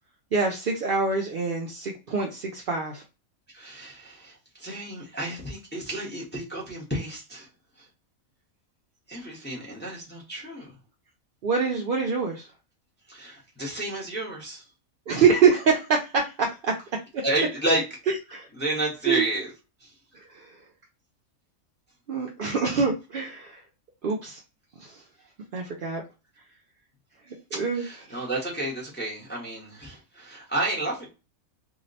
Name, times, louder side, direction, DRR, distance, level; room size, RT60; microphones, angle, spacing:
voice 1, 0.3-3.0 11.4-12.5 15.1-17.2 18.1-18.5 19.1-19.2 20.1-20.6 22.1-23.6 24.0-24.4 24.8-25.0 25.5-26.0 27.5-28.2, right 5 dB, 60° right, 0.5 m, -25 dB
voice 2, 3.5-7.5 7.8-7.9 9.1-10.7 13.1-14.6 17.2-17.8 18.5-19.5 19.8-19.9 27.5-31.1, right 1 dB, 10° left, 0.8 m, -31 dB
2.8 x 2.1 x 3.9 m
omnidirectional pair, 1.5 m